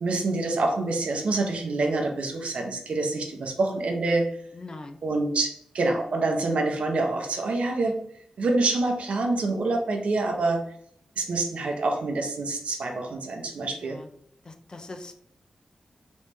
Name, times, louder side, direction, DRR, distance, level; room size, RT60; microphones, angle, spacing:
voice 1, 0.0-4.3 5.0-8.0 8.4-10.6 11.2-14.0, right 2 dB, 75° right, 2 dB, 0.7 m, -26 dB
voice 2, 4.6-5.0 13.8-14.0 14.5-15.1, left 2 dB, 40° left, 6 dB, 0.4 m, -41 dB
3.3 x 3.1 x 3.1 m, 0.65 s
wide cardioid pair, 105°, 2 cm